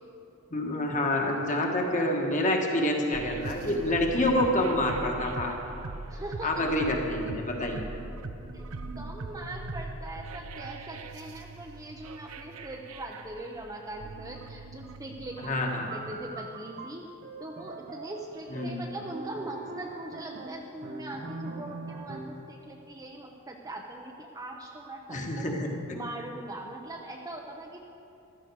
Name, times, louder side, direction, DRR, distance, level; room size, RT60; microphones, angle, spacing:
voice 1, 0.5-5.5 6.4-7.9 15.4-15.9 18.5-18.8 25.1-25.7, left 1 dB, 35° left, 1 dB, 1.6 m, -27 dB
sound 1, 3.1-15.5, right 2 dB, 75° right, 0.7 m, -41 dB
voice 2, 6.1-6.5 8.5-8.7 9.0-17.1 17.4-25.5 25.9-27.8, right 1 dB, 15° right, 0 dB, 0.7 m, -41 dB
sound 2, 15.4-22.5, right 3 dB, 40° right, 0.9 m, -42 dB
15.0 x 12.5 x 4.8 m, 2.7 s
head